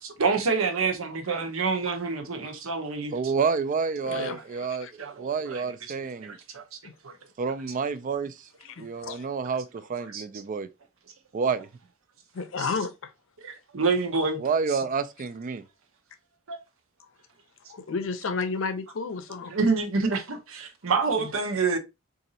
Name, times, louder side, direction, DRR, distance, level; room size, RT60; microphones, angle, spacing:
voice 1, 0.0-3.1 5.0-5.6 6.2-6.6 7.0-7.1 10.1-10.2 12.6-12.7 13.4-14.4 16.5-16.6 19.5-21.8, right 4 dB, 75° right, 0.8 m, -27 dB
voice 2, 3.1-6.4 7.4-8.4 8.8-10.7 11.3-11.7 14.4-15.6, right 5 dB, 40° right, 0.3 m, -29 dB
voice 3, 4.0-4.9 8.8-9.2 12.3-12.9 17.7-19.5 21.2-21.3, left 4 dB, 65° left, 0.5 m, -32 dB
3.9 x 2.5 x 2.7 m
head